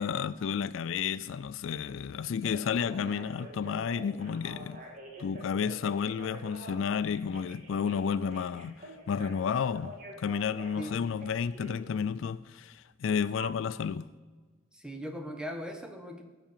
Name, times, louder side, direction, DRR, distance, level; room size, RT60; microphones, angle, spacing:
voice 1, 0.0-4.8 5.2-14.1, left 7 dB, 65° left, 0.3 m, -31 dB
Telephone, 2.2-11.8 13.4-13.5, right 1 dB, 40° right, 2.4 m, -46 dB
voice 2, 14.7-16.2, equal, 5° right, 1.3 m, -39 dB
16.0 x 6.8 x 7.4 m
head